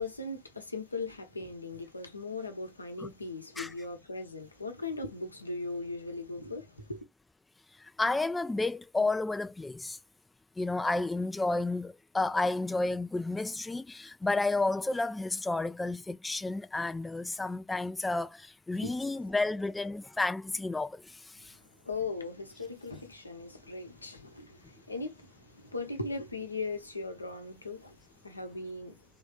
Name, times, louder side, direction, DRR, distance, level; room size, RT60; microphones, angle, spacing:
voice 1, 0.0-7.1 18.7-19.3 21.8-29.1, left 3 dB, 85° left, 0.9 m, -39 dB
voice 2, 8.0-10.0 10.6-21.6, left 2 dB, 10° left, 0.3 m, -31 dB
3.8 x 3.3 x 2.3 m
figure-of-eight pair, 70°, 0 cm